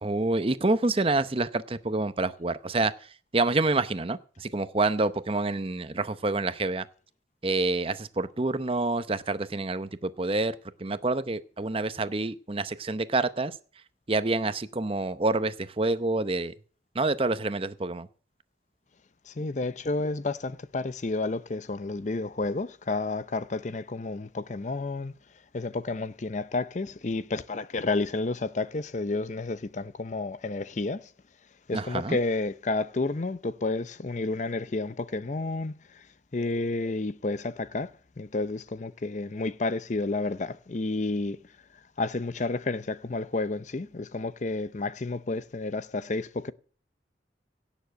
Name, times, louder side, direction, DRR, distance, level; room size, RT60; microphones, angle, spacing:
voice 1, 0.0-2.9 3.3-6.8 7.4-10.5 10.8-13.5 14.1-16.5 16.9-18.1 31.7-32.2, right 2 dB, 30° right, 0.7 m, -27 dB
voice 2, 19.3-25.1 25.5-31.1 31.7-36.1 36.3-41.4 42.0-46.5, left 3 dB, 40° left, 0.6 m, -31 dB
17.0 x 7.2 x 6.4 m
head